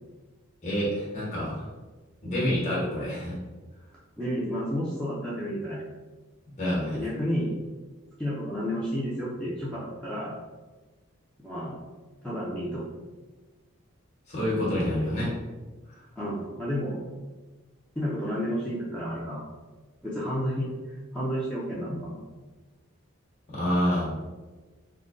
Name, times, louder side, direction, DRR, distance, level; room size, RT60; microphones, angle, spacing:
voice 1, 0.6-1.7 2.2-3.4 6.6-7.0 14.3-15.3 15.9-16.0 23.5-24.1, equal, 30° left, -7 dB, 1.2 m, -27 dB
voice 2, 4.2-5.8 6.9-7.5 8.2-10.4 11.4-11.8 12.2-12.8 16.2-17.0 18.0-19.5 20.0-20.7 21.1-22.2, equal, 5° left, -8 dB, 0.5 m, -31 dB
3.6 x 2.2 x 3.7 m, 1.3 s
head